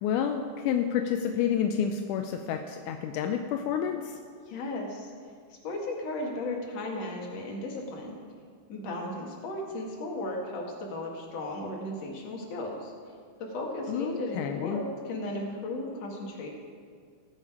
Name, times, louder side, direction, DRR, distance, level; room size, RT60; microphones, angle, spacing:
voice 1, 0.0-4.2 13.9-14.9, left 8 dB, 80° left, 5 dB, 1.8 m, -29 dB
voice 2, 4.5-5.1 5.6-8.2 8.7-12.9 13.4-16.5, left 2 dB, 55° left, -1 dB, 2.6 m, -35 dB
18.0 x 7.4 x 4.8 m, 2.1 s
omnidirectional pair, 4.1 m